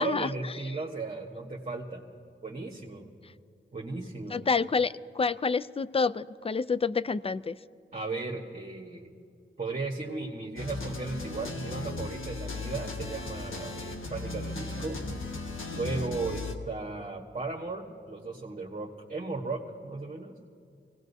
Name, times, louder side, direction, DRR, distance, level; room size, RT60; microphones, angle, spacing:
voice 1, 0.0-2.0 2.4-3.1 3.7-4.5 7.9-9.1 9.6-15.0 15.7-20.3, right 3 dB, 35° right, -2 dB, 1.3 m, -36 dB
voice 2, 4.3-7.6, left 4 dB, 30° left, 17 dB, 0.4 m, -28 dB
sound 1, 10.6-16.5, left 2 dB, 80° left, 1.3 m, -36 dB
25.0 x 18.0 x 2.7 m, 2.3 s
wide cardioid pair, 70°, 21 cm